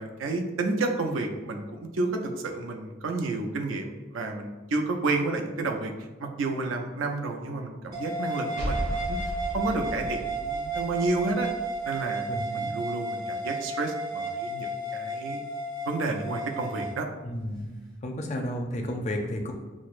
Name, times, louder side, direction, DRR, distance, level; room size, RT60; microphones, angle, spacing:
voice 1, 0.0-5.9 6.2-11.5 11.8-12.2 12.5-15.4 15.8-17.1, right 3 dB, 85° right, 4 dB, 0.5 m, -30 dB
sound 1, 7.9-17.0, right 2 dB, 20° right, 0.4 m, -33 dB
sound 2, 8.5-12.1, equal, 60° right, 1.2 m, -35 dB
voice 2, 12.3-12.7 17.2-17.7 18.0-19.5, left 1 dB, 35° left, 2 dB, 0.4 m, -32 dB
6.0 x 2.0 x 2.4 m, 1.2 s
head